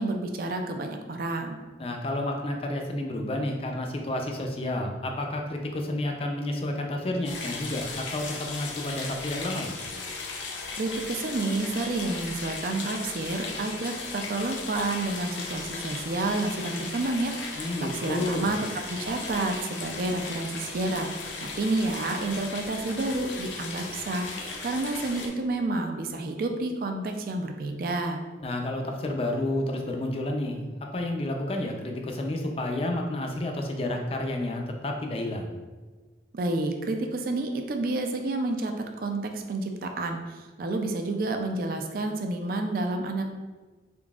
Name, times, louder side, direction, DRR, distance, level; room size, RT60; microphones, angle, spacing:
voice 1, 0.0-1.6 10.7-28.2 36.3-38.7 39.0-43.2, right 2 dB, 55° right, 4 dB, 0.4 m, -30 dB
voice 2, 1.8-9.7 17.6-18.5 28.4-30.7 30.9-35.5, left 1 dB, 30° left, 2 dB, 0.4 m, -30 dB
sound 1, 7.2-25.3, left 3 dB, 85° left, 0.6 m, -37 dB
3.8 x 3.4 x 2.4 m, 1.3 s
head